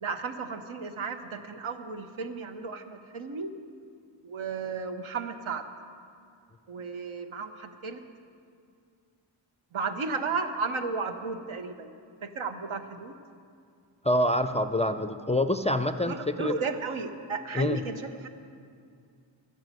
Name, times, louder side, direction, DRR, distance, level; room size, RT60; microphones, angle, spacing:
voice 1, 0.0-3.5 4.2-5.7 6.7-8.0 9.7-11.9 12.2-13.2 16.1-18.3, right 4 dB, 75° right, 7 dB, 1.0 m, -34 dB
voice 2, 14.0-16.5 17.5-17.8, left 1 dB, 15° left, 9 dB, 0.4 m, -26 dB
11.5 x 10.5 x 7.6 m, 2.3 s
wide cardioid pair, 75°, 49 cm